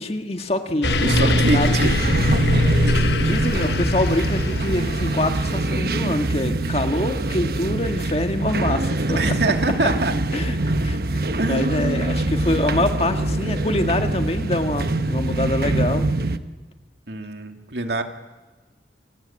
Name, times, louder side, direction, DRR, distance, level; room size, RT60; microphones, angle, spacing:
voice 1, 0.0-2.2 2.7-2.8 3.1-9.2 10.3-10.6 10.8-16.1, left 1 dB, 35° left, 6 dB, 1.7 m, -25 dB
voice 2, 0.7-1.9 2.2-2.5 9.1-10.2 11.4-11.8 17.1-18.0, right 2 dB, 70° right, 5 dB, 2.5 m, -25 dB
sound 1, 0.8-5.8, left 2 dB, 75° left, 1.2 m, -23 dB
sound 2, 0.8-16.4, right 2 dB, 55° right, 1.1 m, -24 dB
29.0 x 22.5 x 8.8 m, 1.2 s
head